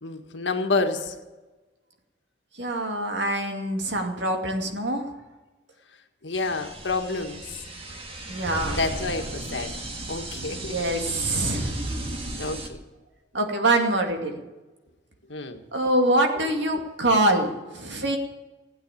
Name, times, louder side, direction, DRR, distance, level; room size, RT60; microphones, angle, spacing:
voice 1, 0.0-1.1 6.2-7.4 8.7-9.8 10.1-11.1 12.4-12.8 15.3-15.6, left 3 dB, 75° left, 6 dB, 1.6 m, -29 dB
voice 2, 2.5-5.1 8.3-8.8 10.5-11.7 13.3-14.4 15.7-18.2, right 1 dB, 70° right, 3 dB, 2.3 m, -24 dB
sound 1, 6.3-12.7, right 1 dB, 30° right, 1.9 m, -35 dB
16.0 x 8.8 x 8.7 m, 1.2 s
head